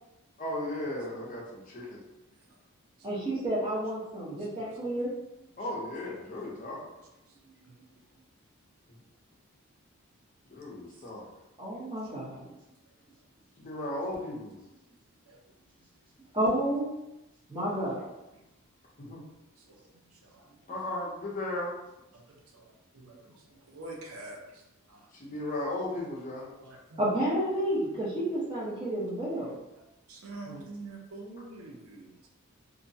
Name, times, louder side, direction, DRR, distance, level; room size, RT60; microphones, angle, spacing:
voice 1, 0.4-2.0 5.6-6.9 10.5-11.3 13.6-14.6 19.0-19.2 20.7-21.7 25.1-26.6 30.5-30.6, left 1 dB, 35° left, -4 dB, 0.6 m, -36 dB
voice 2, 3.0-5.1 11.6-12.5 16.3-16.9 17.5-18.1 27.0-29.5, right 1 dB, 20° right, -7 dB, 0.9 m, -30 dB
voice 3, 4.4-4.7 6.8-7.0 7.3-7.4 7.6-7.8 10.9-11.0 12.0-12.1 15.3-15.4 19.6-20.5 22.1-25.1 26.6-27.0 29.8-32.3, right 2 dB, 80° right, -1 dB, 0.6 m, -47 dB
2.6 x 2.1 x 2.6 m, 0.93 s
head